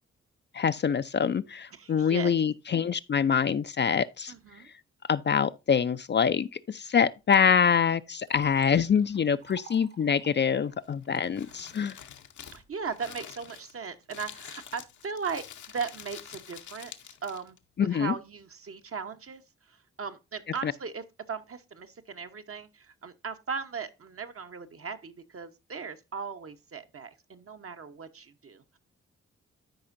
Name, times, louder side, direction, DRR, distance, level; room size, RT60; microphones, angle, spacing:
voice 1, 0.5-4.3 5.1-12.0 17.8-18.1 20.6-20.7, left 7 dB, 35° left, 0.4 m, -25 dB
voice 2, 1.7-2.3 4.3-4.7 11.4-11.8 12.5-17.6 17.9-28.8, right 5 dB, 45° right, 1.0 m, -38 dB
Liquid, 8.2-11.9 12.5-12.9, right 6 dB, 75° right, 2.3 m, -54 dB
Crumpling crinkling, 10.8-17.6, left 9 dB, 70° left, 0.9 m, -47 dB
13.0 x 4.9 x 2.6 m
supercardioid pair, 40°, 30 cm